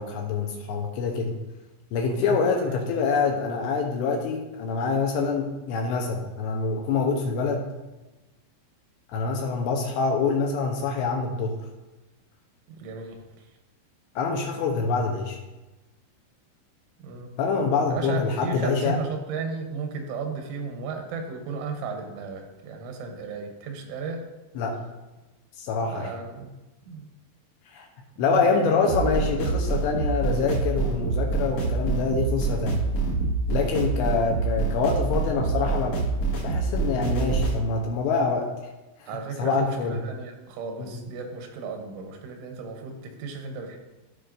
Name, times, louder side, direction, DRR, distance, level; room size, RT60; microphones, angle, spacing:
voice 1, 0.0-1.4 1.9-7.6 9.1-11.6 14.2-15.4 17.4-19.0 24.6-24.8 25.6-26.1 27.7-27.9 28.2-32.8 33.5-36.0 36.4-38.5 39.0-39.1 39.4-40.0 40.8-41.0, left 4 dB, 80° left, 1 dB, 2.7 m, -25 dB
voice 2, 2.0-2.8 12.7-13.2 17.0-17.3 17.9-24.2 25.9-26.5 26.8-27.1 28.2-28.7 39.1-43.8, right 4 dB, 85° right, 4 dB, 3.3 m, -35 dB
sound 1, 28.9-37.6, right 3 dB, 55° left, 1.9 m, -26 dB
15.0 x 4.9 x 2.5 m, 1.1 s
omnidirectional pair, 5.5 m